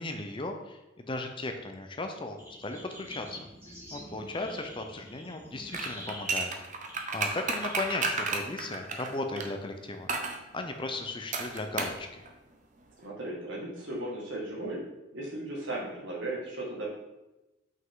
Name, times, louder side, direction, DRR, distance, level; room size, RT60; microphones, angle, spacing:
voice 1, 0.0-3.4 3.9-6.5 6.8-10.1 10.5-12.2, left 2 dB, 25° left, 5 dB, 0.6 m, -36 dB
sound 1, 2.4-9.3, equal, 10° right, 1.7 m, -48 dB
sound 2, 5.7-9.5 10.1-10.4 11.3-12.0 12.3-12.4, right 4 dB, 35° right, 0.7 m, -32 dB
voice 2, 13.0-14.8 15.1-16.9, right 1 dB, 60° right, -3 dB, 1.8 m, -36 dB
6.0 x 5.5 x 3.8 m, 1.0 s
head